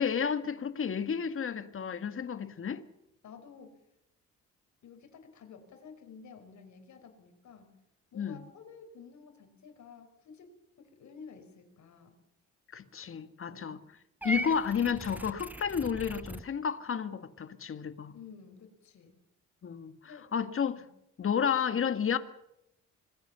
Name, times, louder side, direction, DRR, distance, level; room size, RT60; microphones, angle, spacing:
voice 1, 0.0-2.8 8.1-8.4 12.7-13.8 14.2-18.1 19.6-19.9 20.3-20.8 21.2-22.2, left 7 dB, 45° left, 1.8 m, -31 dB
voice 2, 3.2-3.8 4.8-7.7 8.1-10.5 10.8-12.2 13.5-13.7 18.1-19.1 20.0-20.3 20.8-20.9, left 6 dB, 70° left, 4.9 m, -52 dB
Purr / Meow, 14.2-16.4, right 1 dB, 5° right, 0.9 m, -38 dB
25.0 x 20.0 x 6.9 m
cardioid pair, 90°, 30 cm